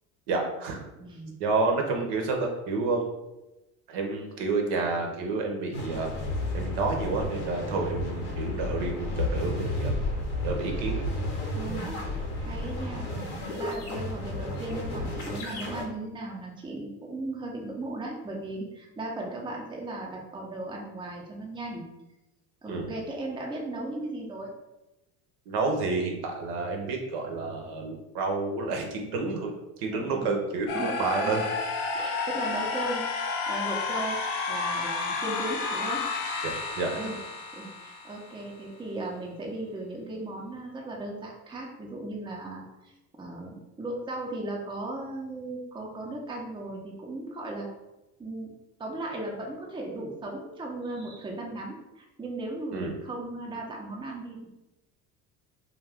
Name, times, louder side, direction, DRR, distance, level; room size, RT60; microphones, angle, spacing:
voice 1, 0.3-0.8 1.4-3.1 3.9-6.1 6.5-9.9 10.4-11.0 22.7-22.9 25.5-29.5 29.8-31.5 36.4-37.1 52.7-52.9, right 3 dB, 65° right, 2 dB, 0.8 m, -29 dB
voice 2, 1.0-1.3 11.6-12.0 12.4-13.1 13.6-21.8 22.6-24.5 29.9-30.3 30.7-30.9 31.9-34.2 34.5-36.0 37.0-37.2 37.5-42.9 43.2-47.7 48.2-48.5 48.8-54.5, right 2 dB, 10° right, -1 dB, 0.6 m, -36 dB
sound 1, 5.7-15.8, left 1 dB, 85° left, 1.0 m, -32 dB
sound 2, 30.7-38.6, left 4 dB, 65° left, 0.6 m, -31 dB
2.4 x 2.3 x 3.4 m, 0.98 s
supercardioid pair, 85°, 43 cm